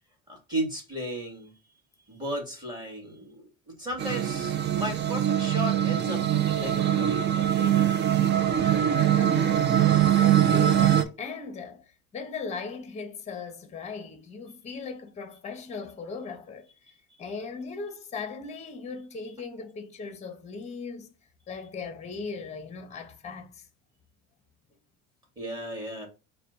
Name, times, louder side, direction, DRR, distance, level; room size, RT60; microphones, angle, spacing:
voice 1, 0.3-1.5 2.1-3.5 3.8-7.9 25.4-26.1, right 1 dB, 10° right, 2.2 m, -35 dB
sound 1, 4.0-11.0, right 10 dB, 30° right, 0.4 m, -23 dB
voice 2, 8.6-11.8 12.1-16.7 17.2-21.1 21.5-23.7, left 4 dB, 20° left, 0.8 m, -38 dB
4.1 x 2.3 x 3.8 m
supercardioid pair, 100°, 35 cm